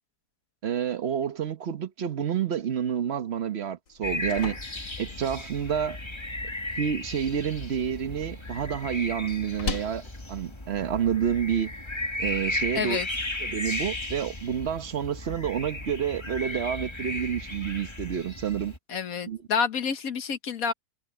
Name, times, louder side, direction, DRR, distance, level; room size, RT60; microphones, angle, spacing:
voice 1, 0.6-4.6 5.0-6.0 6.8-10.0 10.3-11.7 12.2-13.0 13.4-18.7 19.3-19.4, right 8 dB, 45° right, 1.0 m, -29 dB
sound 1, 3.9-11.8, left 4 dB, 85° left, 2.8 m, -42 dB
sound 2, 4.0-18.8, left 2 dB, 15° left, 1.6 m, -35 dB
voice 2, 12.7-13.1 18.9-20.7, left 6 dB, 55° left, 1.5 m, -28 dB
omnidirectional pair, 1.9 m